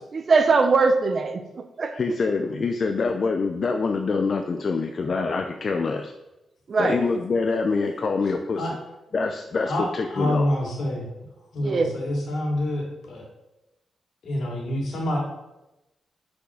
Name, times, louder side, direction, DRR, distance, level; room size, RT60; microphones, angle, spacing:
voice 1, 0.1-1.9 6.7-7.0 11.6-11.9, right 4 dB, 35° right, 8 dB, 0.7 m, -21 dB
voice 2, 1.9-6.1 6.8-8.7 9.1-10.4, left 4 dB, 35° left, 5 dB, 0.5 m, -25 dB
voice 3, 9.6-11.1 11.5-13.2 14.2-15.2, left 1 dB, 70° left, -1 dB, 2.6 m, -27 dB
6.3 x 5.8 x 6.2 m, 0.97 s
wide cardioid pair, 180°, 0 cm